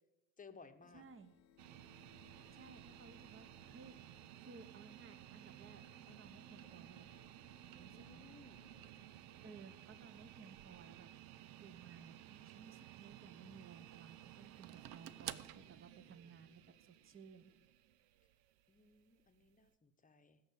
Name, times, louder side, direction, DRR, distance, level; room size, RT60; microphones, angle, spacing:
voice 1, 0.4-1.0 7.8-9.2 18.7-20.4, left 4 dB, 15° left, 8 dB, 1.2 m, -61 dB
sound 1, 0.8-12.4, left 9 dB, 85° left, 1.1 m, -70 dB
voice 2, 0.9-1.4 2.5-4.0 4.4-7.1 7.7-8.2 9.4-11.1 11.6-17.5, right 5 dB, 25° right, 11 dB, 1.3 m, -58 dB
sound 2, 1.6-19.7, right 13 dB, 55° right, 0.8 m, -55 dB
16.5 x 6.6 x 8.2 m, 1.1 s
figure-of-eight pair, 65°, 49 cm